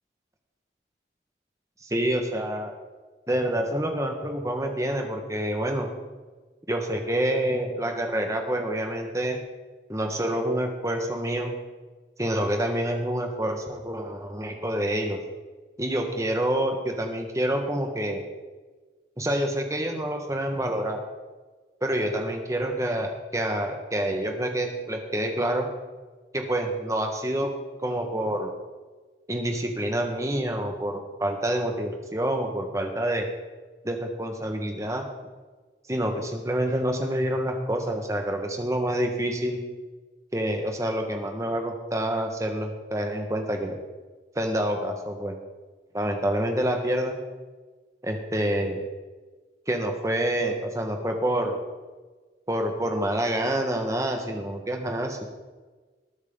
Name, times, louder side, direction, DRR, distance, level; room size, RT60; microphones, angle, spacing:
voice 1, 1.8-2.7 3.3-5.9 6.7-9.4 9.9-11.5 12.2-15.2 15.8-18.2 19.2-21.0 21.8-25.7 26.3-27.5 27.8-28.5 29.3-33.3 33.8-35.1 35.9-39.6 40.3-43.8 44.3-45.4 45.9-47.2 48.0-48.8 49.7-51.6 52.5-55.2, right 1 dB, 15° right, 3 dB, 1.4 m, -27 dB
19.5 x 9.5 x 3.8 m, 1.3 s
head